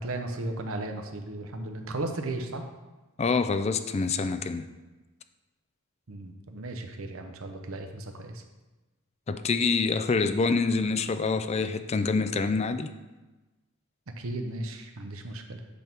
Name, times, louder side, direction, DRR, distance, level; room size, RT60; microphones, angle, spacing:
voice 1, 0.0-2.7 6.1-8.4 14.2-15.6, right 2 dB, 75° right, 5 dB, 0.8 m, -35 dB
voice 2, 3.2-4.7 9.3-12.9, left 4 dB, 30° left, 10 dB, 0.4 m, -26 dB
8.2 x 3.6 x 5.9 m, 1.2 s
head